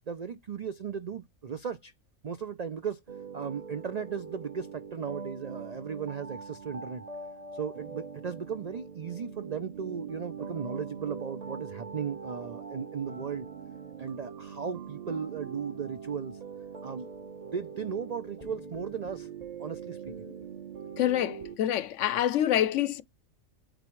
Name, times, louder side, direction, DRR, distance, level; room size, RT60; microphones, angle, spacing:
voice 1, 0.1-1.9 2.2-3.0 3.3-7.0 7.5-13.5 14.0-16.4 16.8-17.1 17.5-19.3 19.6-20.1, right 6 dB, 85° right, 0.3 m, -36 dB
sound 1, 3.1-21.6, right 5 dB, 30° right, 1.1 m, -42 dB
voice 2, 21.0-23.0, left 11 dB, 70° left, 0.8 m, -26 dB
9.0 x 3.3 x 3.1 m
omnidirectional pair, 1.4 m